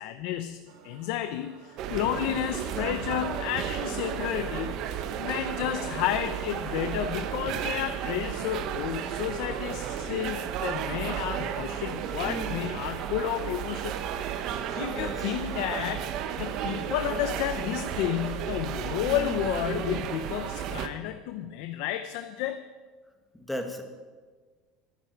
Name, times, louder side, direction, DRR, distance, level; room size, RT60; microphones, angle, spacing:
voice 1, 0.0-4.8 5.2-16.1 16.4-22.6, left 12 dB, 65° left, 10 dB, 0.7 m, -31 dB
sound 1, 0.7-8.6, right 6 dB, 75° right, 2.2 m, -54 dB
sound 2, 1.8-20.9, right 9 dB, 50° right, 1.1 m, -33 dB
voice 2, 2.5-3.0 12.2-12.7 14.9-15.3 23.3-23.8, equal, 5° left, 4 dB, 1.6 m, -36 dB
24.5 x 10.0 x 4.6 m, 1.4 s
cardioid pair, 155°, 0 cm